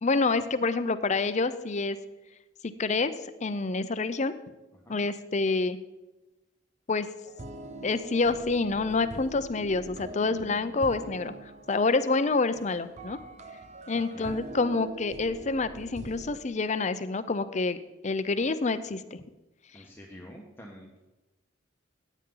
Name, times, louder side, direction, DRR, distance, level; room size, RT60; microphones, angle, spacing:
voice 1, 0.0-2.0 2.8-4.3 4.9-5.8 6.9-7.1 7.8-13.2 13.9-17.8 18.0-19.2 19.7-19.8, left 3 dB, 40° left, 12 dB, 0.6 m, -27 dB
sound 1, 7.2-16.4, right 3 dB, 35° right, 0.6 m, -44 dB
voice 2, 13.9-14.3 14.6-14.7 19.7-21.0, equal, 10° left, -1 dB, 1.2 m, -48 dB
15.0 x 9.3 x 3.9 m, 1.1 s
head